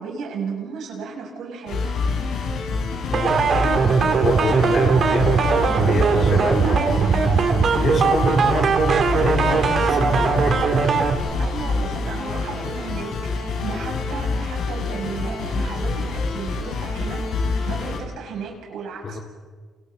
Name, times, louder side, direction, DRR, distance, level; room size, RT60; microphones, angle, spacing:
voice 1, 0.0-1.9 4.4-6.9 11.4-17.2 17.7-19.2, right 5 dB, 80° right, -1 dB, 7.1 m, -34 dB
sound 1, 1.7-18.0, left 4 dB, 80° left, 5.8 m, -27 dB
sound 2, 3.1-11.1, right 5 dB, 55° right, 2.8 m, -19 dB
voice 2, 4.2-5.4 5.8-6.8 7.8-10.6 13.7-14.0 19.0-19.2, left 4 dB, 50° left, 2 dB, 3.5 m, -28 dB
29.5 x 29.0 x 4.1 m, 1.5 s
cardioid pair, 90°, 0 cm